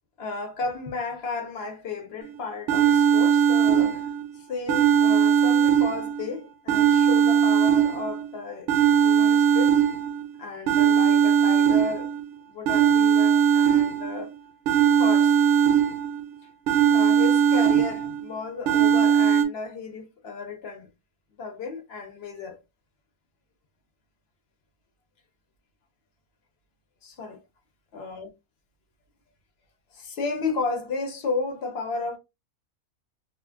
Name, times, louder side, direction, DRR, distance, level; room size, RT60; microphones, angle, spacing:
voice 1, 0.2-4.1 4.4-8.7 9.0-9.8 10.4-12.2 12.5-14.3 15.0-15.4 16.9-20.9 21.4-22.6 27.0-27.4 27.9-28.3 29.9-32.2, left 4 dB, 55° left, 0.8 m, -33 dB
sound 1, 2.2-2.3 2.7-4.3 4.7-6.3 6.7-8.3 8.7-10.3 10.7-12.2 12.7-14.2 14.7-16.2 16.7-18.2 18.7-19.5, right 8 dB, 70° right, 0.9 m, -20 dB
2.5 x 2.3 x 3.4 m
omnidirectional pair, 1.5 m